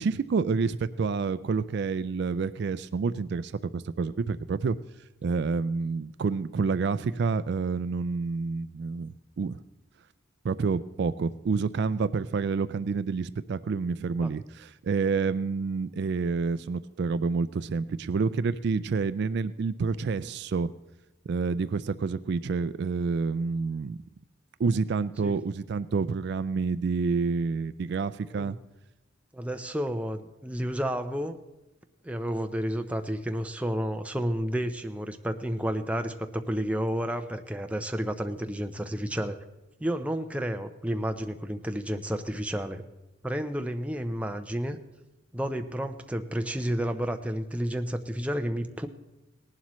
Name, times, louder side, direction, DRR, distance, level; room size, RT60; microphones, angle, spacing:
voice 1, 0.0-4.8 5.2-9.6 10.4-20.7 21.3-24.0 24.6-28.6, right 4 dB, 55° right, 15 dB, 0.3 m, -28 dB
voice 2, 29.3-31.4 32.0-39.4 39.8-42.8 43.2-44.8 45.3-48.9, equal, 5° right, 6 dB, 0.6 m, -31 dB
18.5 x 11.5 x 3.1 m, 1.0 s
head